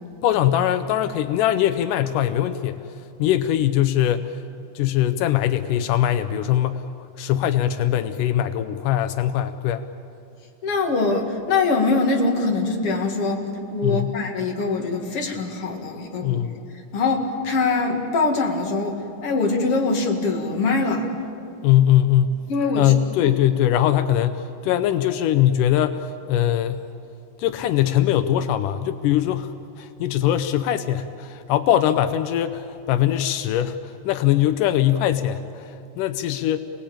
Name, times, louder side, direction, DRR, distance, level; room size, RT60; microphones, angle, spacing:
voice 1, 0.2-2.8 3.2-4.4 4.8-6.9 7.2-9.9 13.8-14.2 16.2-16.6 21.6-22.4 22.8-26.8 27.4-36.6, left 11 dB, 85° left, 10 dB, 2.3 m, -21 dB
voice 2, 10.6-16.4 16.9-21.1 22.5-22.9 23.2-23.3 24.7-24.8, left 3 dB, 45° left, 1 dB, 3.0 m, -23 dB
28.5 x 18.5 x 8.7 m, 2.7 s
omnidirectional pair, 3.7 m